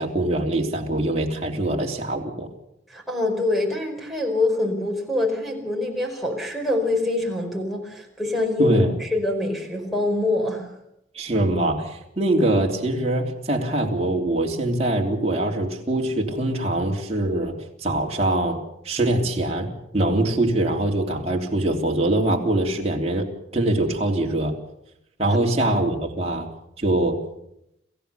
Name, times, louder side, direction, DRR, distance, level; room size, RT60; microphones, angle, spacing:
voice 1, 0.0-2.5 8.6-8.9 11.1-17.5 17.8-18.6 18.8-23.3 23.5-24.5 25.2-26.5 26.8-27.2, right 1 dB, 30° right, 0 dB, 3.2 m, -23 dB
voice 2, 2.9-10.7 25.2-25.4, left 2 dB, ahead, -1 dB, 4.8 m, -25 dB
27.5 x 15.5 x 6.9 m, 0.80 s
head